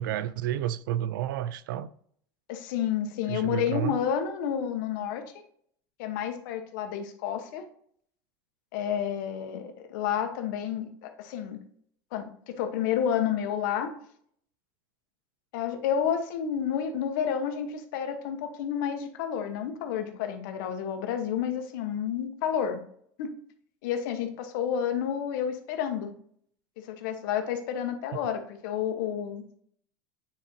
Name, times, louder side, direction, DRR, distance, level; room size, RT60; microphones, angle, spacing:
voice 1, 0.0-1.9 3.3-4.0, right 11 dB, 90° right, 0.4 m, -31 dB
voice 2, 2.5-5.2 6.0-7.7 8.7-11.6 12.1-13.9 15.5-22.8 23.2-23.4 23.8-26.1 26.8-29.6, left 8 dB, 75° left, 1.0 m, -30 dB
8.6 x 4.0 x 2.7 m
supercardioid pair, 115°, 11 cm